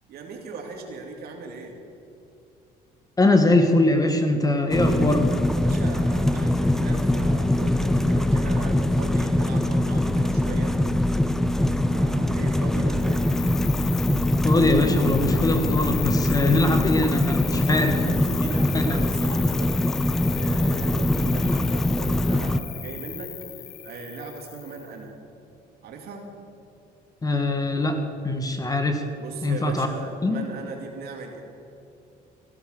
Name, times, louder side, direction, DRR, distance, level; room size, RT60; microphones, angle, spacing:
voice 1, 0.1-1.8 5.5-10.7 11.8-13.3 16.2-23.4 23.8-25.2 25.8-26.3 29.2-31.4, right 4 dB, 65° right, 2 dB, 2.6 m, -38 dB
voice 2, 3.2-5.3 14.4-17.9 18.7-18.8 27.2-29.0 29.4-29.9 30.2-30.4, left 2 dB, 20° left, 6 dB, 1.4 m, -22 dB
sound 1, 4.7-22.6, left 1 dB, 5° left, 0.5 m, -23 dB
Cricket, 13.0-24.9, left 13 dB, 65° left, 0.7 m, -36 dB
15.5 x 11.5 x 6.5 m, 2.7 s
cardioid pair, 110°, 17 cm